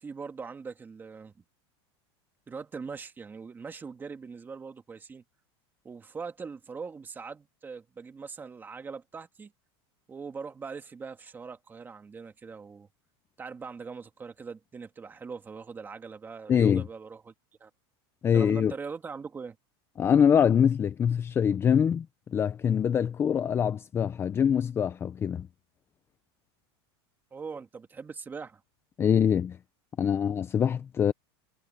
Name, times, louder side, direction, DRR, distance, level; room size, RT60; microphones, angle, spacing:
voice 1, 0.0-1.3 2.5-5.2 5.8-9.5 10.1-12.9 13.4-17.3 17.6-17.7 18.3-19.6 27.3-28.6, right 5 dB, 15° right, 2.3 m, -41 dB
voice 2, 16.5-16.9 18.2-18.7 20.0-25.5 29.0-29.6 30.0-31.1, left 8 dB, 15° left, 0.5 m, -24 dB
supercardioid pair, 155°, 14 cm